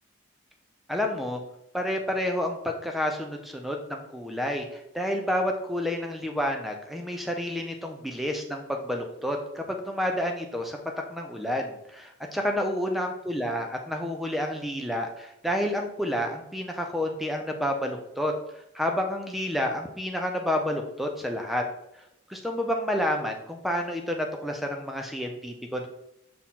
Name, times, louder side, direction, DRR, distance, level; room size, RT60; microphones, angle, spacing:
voice 1, 0.9-1.4 1.7-10.8 11.1-18.3 18.7-21.6 22.3-25.9, left 1 dB, ahead, 3 dB, 0.7 m, -29 dB
5.8 x 4.4 x 3.8 m, 0.79 s
head